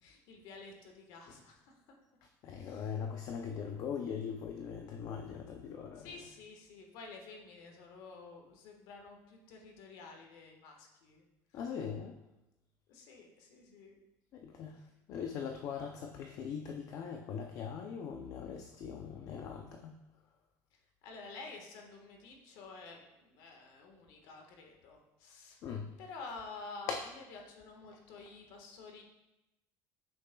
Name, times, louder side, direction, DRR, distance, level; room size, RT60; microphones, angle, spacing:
voice 1, 0.0-1.7 2.5-2.9 6.0-11.3 11.5-11.6 12.9-14.0 20.7-25.6 26.0-26.9 27.3-29.0, left 4 dB, 65° left, 2 dB, 1.3 m, -50 dB
voice 2, 2.4-6.1 11.5-12.2 14.3-20.0 25.6-25.9 26.9-27.0, left 7 dB, 45° left, 4 dB, 0.5 m, -41 dB
8.3 x 6.2 x 2.2 m, 0.96 s
cardioid pair, 150°, 8 cm